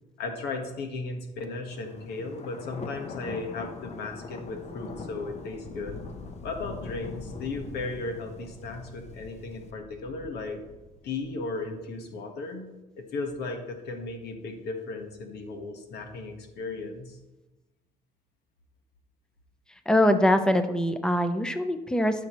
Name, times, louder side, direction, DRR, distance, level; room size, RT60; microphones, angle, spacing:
voice 1, 0.2-6.0 6.4-10.6 11.0-12.7 13.0-17.2, left 3 dB, 75° left, 4 dB, 1.4 m, -36 dB
Thunder, 1.7-11.6, left 4 dB, 40° left, 0.9 m, -42 dB
voice 2, 19.9-22.3, left 1 dB, 5° left, 9 dB, 0.7 m, -23 dB
14.0 x 6.0 x 3.1 m, 1.1 s
cardioid pair, 110°, 17 cm